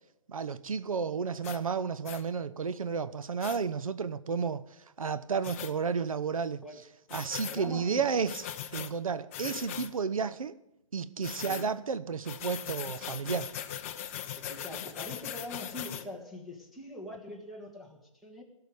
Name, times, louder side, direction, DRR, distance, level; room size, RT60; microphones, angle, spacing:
voice 1, 0.3-6.6 7.1-8.4 8.7-10.5 10.9-13.5, right 5 dB, 85° right, 0.8 m, -32 dB
sound 1, 1.4-1.6 2.0-2.2 3.4-3.6 5.4-5.7 7.1-7.6 8.3-8.9 9.3-9.9 11.2-11.7 12.2-16.0, left 10 dB, 25° left, 0.7 m, -39 dB
voice 2, 7.4-8.1 9.4-9.6 11.4-11.7 14.4-18.4, left 1 dB, ahead, 1.7 m, -43 dB
16.5 x 6.8 x 9.5 m
hypercardioid pair, 155°, 17 cm